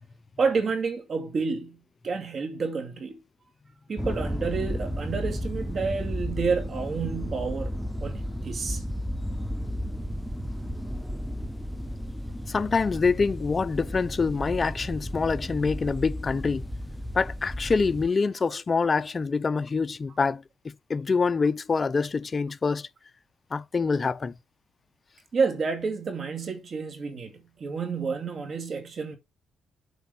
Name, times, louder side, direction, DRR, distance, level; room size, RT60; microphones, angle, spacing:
voice 1, 0.4-1.8 2.0-3.2 3.9-7.7 8.0-8.8 25.3-29.2, right 5 dB, 45° right, 2.3 m, -29 dB
sound 1, 4.0-18.1, equal, ahead, 1.0 m, -33 dB
voice 2, 12.5-16.7 17.1-20.4 20.9-22.9 23.5-24.3, left 4 dB, 35° left, 0.6 m, -25 dB
8.0 x 4.5 x 5.7 m
cardioid pair, 90°, 0 cm